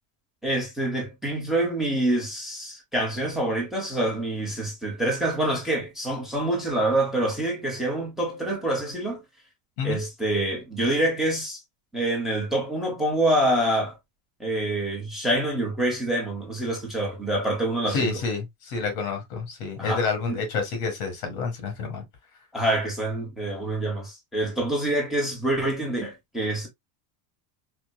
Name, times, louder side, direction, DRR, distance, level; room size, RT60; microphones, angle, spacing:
voice 1, 0.4-9.2 9.8-11.6 11.9-14.0 14.4-18.1 19.8-20.4 22.5-26.7, right 1 dB, ahead, 0.8 m, -26 dB
voice 2, 17.9-22.0, left 4 dB, 90° left, 1.9 m, -29 dB
4.4 x 2.1 x 2.2 m
cardioid pair, 150°, 50 cm